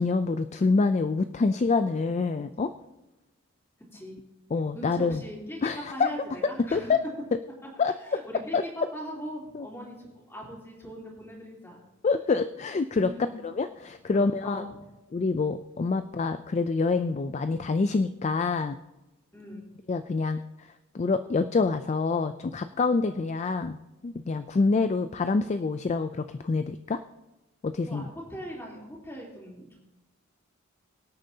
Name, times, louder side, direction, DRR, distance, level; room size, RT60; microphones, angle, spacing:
voice 1, 0.0-2.7 4.5-5.2 5.6-6.1 6.7-7.0 7.8-8.2 8.5-8.6 9.5-9.7 12.0-13.1 13.4-14.6 15.1-18.8 19.9-20.7 20.9-23.8 24.0-27.0 27.6-28.1, left 4 dB, 30° left, 10 dB, 0.3 m, -26 dB
voice 2, 4.7-7.1 8.0-11.8 13.0-13.3 14.1-14.8 19.3-19.7 27.8-29.8, equal, 10° left, -4 dB, 3.3 m, -40 dB
23.5 x 8.9 x 2.8 m, 1.0 s
head